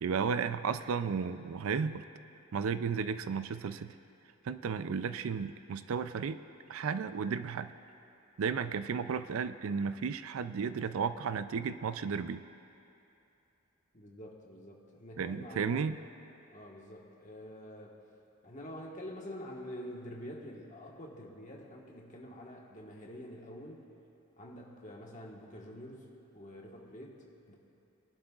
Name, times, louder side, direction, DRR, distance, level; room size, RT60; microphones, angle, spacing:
voice 1, 0.0-2.0 2.5-3.9 4.4-6.4 6.7-7.7 8.4-12.4 15.2-16.0, right 6 dB, 75° right, 12 dB, 0.4 m, -33 dB
voice 2, 13.9-15.9 16.5-18.0 18.4-23.8 24.4-27.6, equal, 35° left, -1 dB, 1.4 m, -47 dB
23.0 x 11.5 x 2.4 m, 2.7 s
head